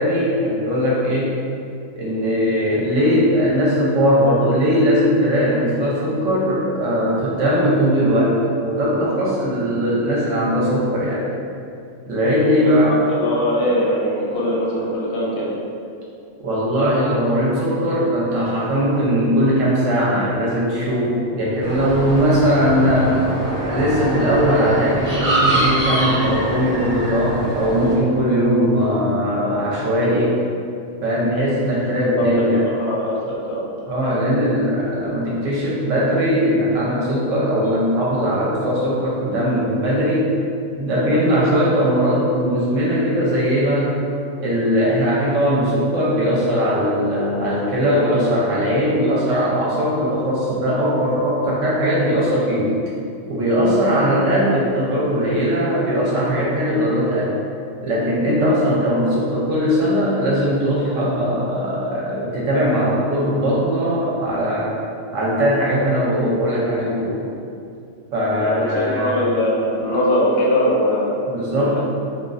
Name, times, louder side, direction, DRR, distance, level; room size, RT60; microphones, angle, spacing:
voice 1, 0.0-1.3 1.9-8.4 8.6-11.2 12.1-13.0 16.4-23.1 23.7-30.3 31.0-32.6 33.9-40.3 40.8-44.0 44.4-52.7 53.3-57.3 57.8-64.7 65.1-67.2 68.1-69.2 71.3-71.8, equal, 70° right, -6 dB, 0.9 m, -19 dB
voice 2, 13.1-15.6 32.2-32.4 32.8-33.6 68.4-68.7 69.0-71.2 71.5-71.8, left 1 dB, 60° left, -5 dB, 0.7 m, -21 dB
sound 1, 21.6-27.9, right 1 dB, 45° right, 0.8 m, -24 dB
2.5 x 2.3 x 2.4 m, 2.4 s
omnidirectional pair, 1.4 m